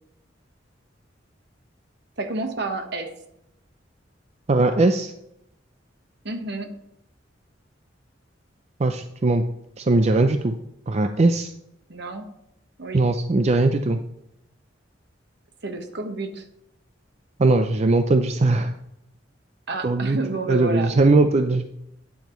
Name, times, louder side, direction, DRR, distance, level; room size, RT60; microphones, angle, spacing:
voice 1, 2.2-3.1 6.2-6.7 11.9-12.3 12.8-13.1 15.6-16.5 19.7-20.9, right 3 dB, 65° right, 6 dB, 1.3 m, -30 dB
voice 2, 4.5-5.1 8.8-9.4 9.8-10.5 10.9-11.5 12.9-14.0 17.4-18.7 19.8-20.2 20.5-21.7, right 2 dB, 35° right, 7 dB, 0.5 m, -19 dB
12.0 x 9.4 x 3.1 m, 0.82 s
head